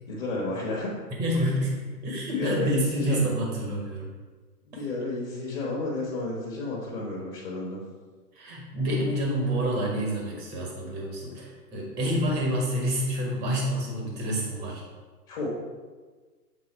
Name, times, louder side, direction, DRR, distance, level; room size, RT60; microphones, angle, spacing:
voice 1, 0.1-0.9 2.3-3.3 4.7-7.8 12.1-12.3 15.3-15.5, left 3 dB, 35° left, -4 dB, 1.3 m, -31 dB
voice 2, 1.2-1.7 2.0-4.1 8.3-14.8, right 1 dB, 5° right, -1 dB, 0.7 m, -28 dB
7.5 x 3.6 x 4.4 m, 1.4 s
figure-of-eight pair, 125°, 49 cm